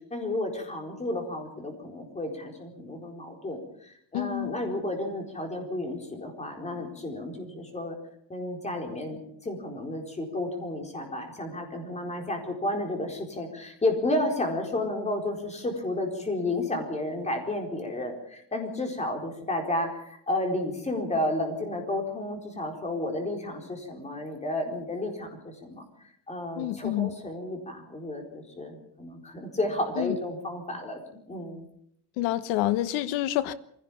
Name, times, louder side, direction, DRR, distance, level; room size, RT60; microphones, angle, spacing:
voice 1, 0.1-8.0 8.3-25.8 26.3-31.7, left 1 dB, 15° left, 3 dB, 4.4 m, -32 dB
voice 2, 4.1-4.5 26.6-27.1 30.0-30.1 32.2-33.5, left 14 dB, 90° left, 13 dB, 1.3 m, -28 dB
23.5 x 17.0 x 7.2 m, 0.71 s
cardioid pair, 160°, 45 cm